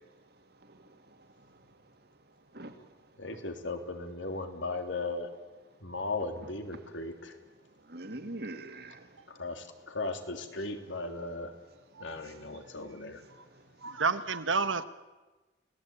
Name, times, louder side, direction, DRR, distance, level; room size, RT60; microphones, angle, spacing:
voice 1, 0.6-1.0 1.4-1.5 2.5-2.9 7.9-9.2, right 1 dB, 55° right, 7 dB, 2.4 m, -43 dB
voice 2, 3.1-5.3 5.8-7.4 9.3-11.5 12.0-13.2, left 3 dB, 80° left, 6 dB, 3.2 m, -37 dB
voice 3, 13.8-14.8, right 4 dB, 85° right, 12 dB, 1.3 m, -29 dB
30.0 x 18.5 x 9.0 m, 1.2 s
head